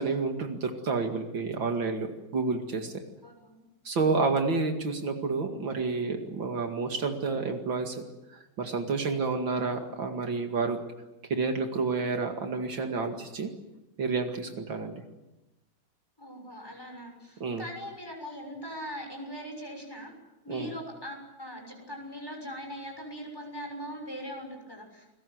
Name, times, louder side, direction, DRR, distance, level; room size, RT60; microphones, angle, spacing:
voice 1, 0.0-2.9 3.8-8.0 8.6-10.8 11.3-13.5 14.0-14.9 17.4-17.6 20.5-20.7, right 4 dB, 70° right, 4 dB, 2.9 m, -29 dB
voice 2, 3.2-3.6 4.0-4.2 16.2-20.1 20.4-25.2, equal, 10° left, 2 dB, 6.6 m, -41 dB
29.0 x 21.0 x 7.9 m, 0.99 s
omnidirectional pair, 2.2 m